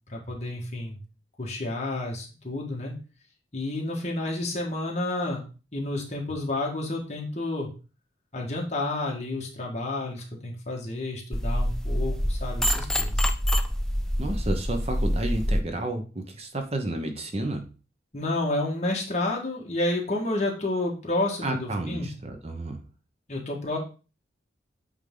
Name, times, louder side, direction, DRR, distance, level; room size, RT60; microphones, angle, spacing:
voice 1, 0.1-1.0 1.4-2.9 3.5-5.4 5.7-7.7 8.3-13.2 18.1-22.1 23.3-23.8, left 2 dB, 40° left, -1 dB, 1.7 m, -30 dB
sound 1, 11.3-15.6, equal, 5° left, 0.4 m, -26 dB
voice 2, 14.2-17.7 21.4-22.8, right 1 dB, 35° right, 5 dB, 0.8 m, -31 dB
8.2 x 3.6 x 3.8 m, 0.34 s
head